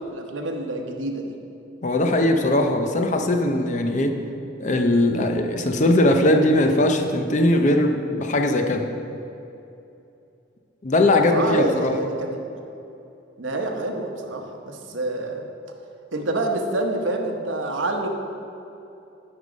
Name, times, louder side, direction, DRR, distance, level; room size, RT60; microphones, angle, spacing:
voice 1, 0.0-1.4 11.1-12.4 13.4-15.4 16.1-18.1, right 2 dB, 80° right, 3 dB, 0.9 m, -27 dB
voice 2, 1.8-4.2 4.6-8.9 10.8-11.9, left 1 dB, 40° left, 5 dB, 0.6 m, -20 dB
9.6 x 5.4 x 5.1 m, 2.8 s
head